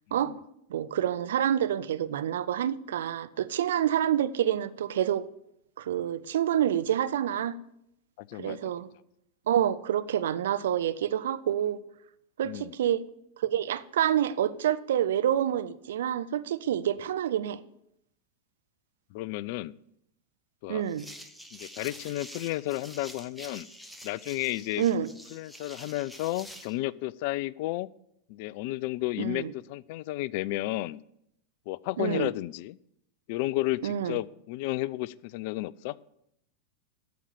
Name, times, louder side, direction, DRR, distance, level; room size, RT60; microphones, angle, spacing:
voice 1, 0.1-0.4 8.2-8.7 12.4-12.7 19.1-19.7 20.6-20.8 21.5-23.7 24.0-24.8 25.3-27.9 28.3-31.0 31.7-32.8 33.3-35.9, left 17 dB, 50° left, 0.3 m, -32 dB
voice 2, 0.7-5.2 5.8-7.6 8.4-8.9 9.5-11.8 12.4-13.0 13.4-17.6 20.7-21.1 24.8-25.1 29.2-29.5 32.0-32.3 33.8-34.2, right 10 dB, 60° right, 0.6 m, -27 dB
sound 1, 20.9-26.8, equal, ahead, 1.0 m, -47 dB
9.3 x 7.1 x 8.6 m
figure-of-eight pair, 90°, 0 cm